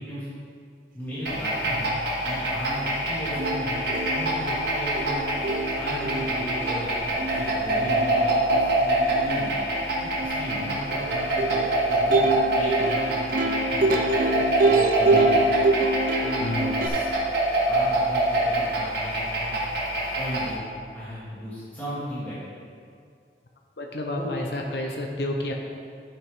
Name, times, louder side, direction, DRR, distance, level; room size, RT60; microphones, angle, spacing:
voice 1, 0.9-1.9 2.2-5.2 5.8-6.9 7.3-9.5 10.2-13.9 14.7-15.5 16.2-17.1 17.7-19.5 20.2-20.6 20.9-22.5 24.1-24.5, equal, 10° left, -12 dB, 2.2 m, -36 dB
sound 1, 1.3-20.6, right 1 dB, 70° right, 1.7 m, -25 dB
Plucked string instrument, 3.0-3.1 3.4-16.9, right 2 dB, 50° right, 0.6 m, -27 dB
voice 2, 15.1-15.4 16.4-16.7 23.8-25.5, left 1 dB, 70° left, 1 dB, 0.8 m, -30 dB
11.0 x 5.9 x 3.6 m, 2.3 s
head